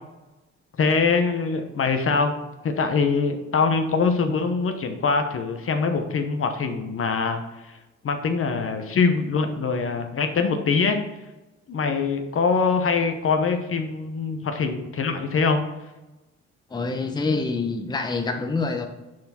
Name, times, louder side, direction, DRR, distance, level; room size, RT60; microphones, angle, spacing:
voice 1, 0.8-2.3 2.6-7.4 7.7-7.8 8.0-11.0 11.7-15.6, left 4 dB, 45° left, 6 dB, 0.9 m, -23 dB
voice 2, 16.7-18.9, left 3 dB, 15° left, 4 dB, 0.7 m, -26 dB
6.4 x 4.2 x 4.2 m, 1.0 s
cardioid pair, 90°, 30 cm